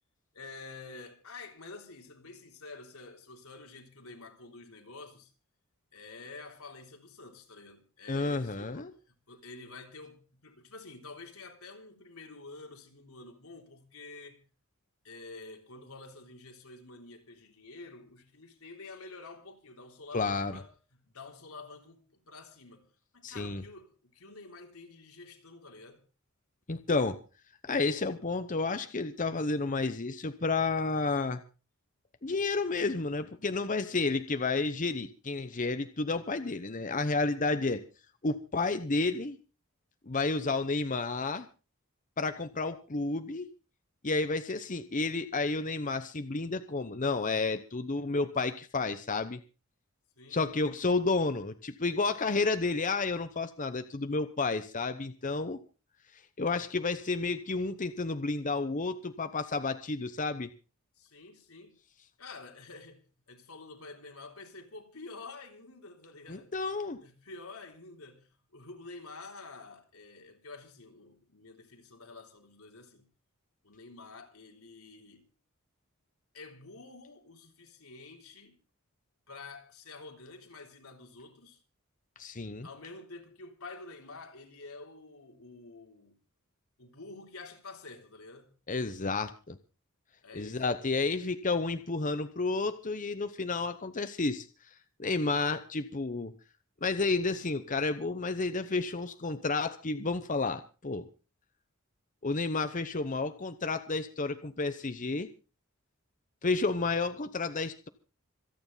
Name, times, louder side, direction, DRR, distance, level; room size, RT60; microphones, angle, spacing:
voice 1, 0.3-5.3 5.9-14.4 15.0-26.0 50.2-50.4 61.0-61.8 62.2-66.5 67.0-73.1 73.6-75.3 76.3-78.6 79.3-81.6 82.6-86.2 86.8-88.6 90.2-90.6, left 3 dB, 85° left, 3.5 m, -49 dB
voice 2, 8.1-8.9 20.1-20.6 23.2-23.6 26.7-27.2 27.6-31.4 32.2-37.8 38.2-39.4 40.1-41.5 42.2-43.5 44.0-49.4 50.3-55.6 56.4-60.5 66.3-67.0 82.2-82.7 88.7-89.6 90.3-94.5 95.0-96.3 96.8-101.1 102.2-105.3 106.4-107.9, left 3 dB, 35° left, 0.9 m, -31 dB
26.5 x 9.6 x 4.0 m
head